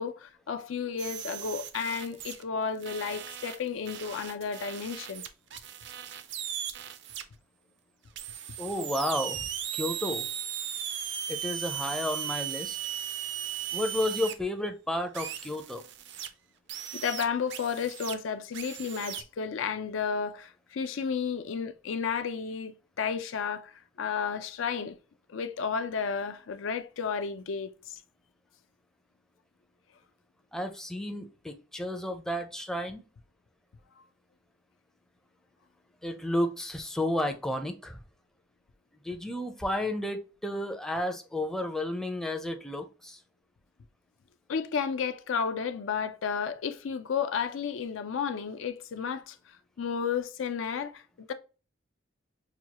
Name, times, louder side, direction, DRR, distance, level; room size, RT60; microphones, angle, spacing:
voice 1, 0.0-5.2 16.9-25.0 25.3-28.0 44.5-51.3, left 6 dB, 80° left, 0.5 m, -32 dB
sound 1, 1.0-2.4 2.8-7.2 8.1-14.3 15.1-16.3 16.7-18.2 18.5-19.2, right 10 dB, 65° right, 0.5 m, -37 dB
voice 2, 8.6-10.3 11.3-12.8 13.7-15.8 30.5-33.0 36.0-38.0 39.0-43.2, left 1 dB, 5° left, 0.5 m, -32 dB
5.9 x 2.3 x 2.8 m
head